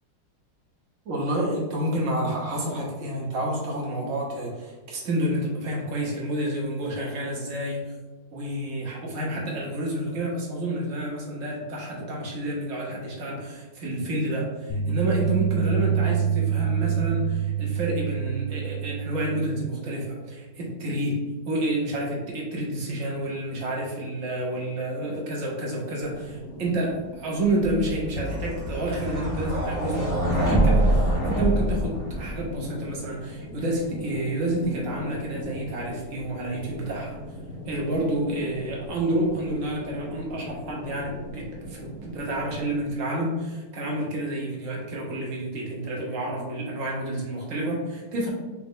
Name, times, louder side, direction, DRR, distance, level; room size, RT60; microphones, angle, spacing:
voice 1, 1.1-7.9 8.3-21.2 21.5-37.2 37.7-48.3, right 1 dB, 60° right, -3 dB, 0.9 m, -29 dB
sound 1, 14.7-19.7, right 8 dB, 75° left, 1.4 m, -26 dB
sound 2, 26.0-42.9, left 1 dB, 20° right, 0.8 m, -40 dB
sound 3, 27.7-32.5, right 1 dB, 25° left, 0.4 m, -24 dB
4.7 x 2.0 x 3.6 m, 1.2 s
omnidirectional pair, 2.2 m